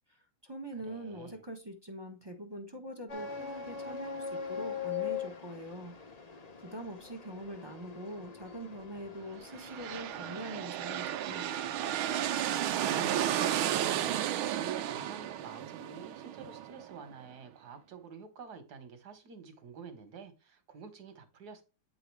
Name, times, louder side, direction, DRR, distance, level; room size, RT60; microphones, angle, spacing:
voice 1, 0.1-5.9 6.6-11.8, equal, 20° right, 0.7 m, -43 dB
voice 2, 0.8-1.4 12.8-21.6, right 5 dB, 55° right, 1.9 m, -48 dB
sound 1, 3.1-10.4, left 7 dB, 35° left, 0.6 m, -41 dB
sound 2, 9.4-17.1, right 11 dB, 90° right, 1.5 m, -33 dB
9.3 x 3.9 x 4.7 m
omnidirectional pair, 2.2 m